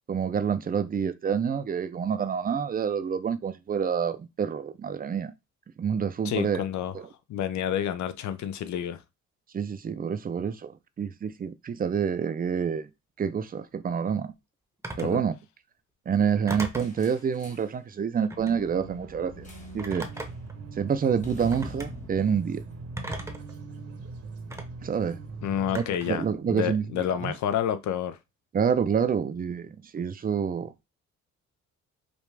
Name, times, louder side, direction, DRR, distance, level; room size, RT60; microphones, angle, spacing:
voice 1, 0.1-5.3 5.8-6.6 6.9-7.1 9.5-12.9 13.2-14.3 15.0-15.4 16.1-19.5 19.7-20.1 20.8-22.6 24.8-25.2 25.7-26.8 27.2-27.4 28.5-30.7, right 7 dB, 30° right, 0.5 m, -27 dB
voice 2, 6.2-6.9 7.3-9.0 15.0-15.2 25.4-26.2 26.5-28.2, left 10 dB, 70° left, 0.6 m, -29 dB
Telephone, 14.8-15.2 16.5-17.0 18.2-18.6 19.8-20.5 21.5-21.9 23.0-23.5 24.5-24.6 25.7-26.2, right 1 dB, 10° right, 0.8 m, -37 dB
sound 1, 16.8-17.8 19.4-19.9 20.1-20.4 21.2-23.6, left 3 dB, 25° left, 1.2 m, -46 dB
sound 2, 18.4-25.8, right 3 dB, 50° right, 1.0 m, -41 dB
5.1 x 2.4 x 3.3 m
cardioid pair, 90°, 30 cm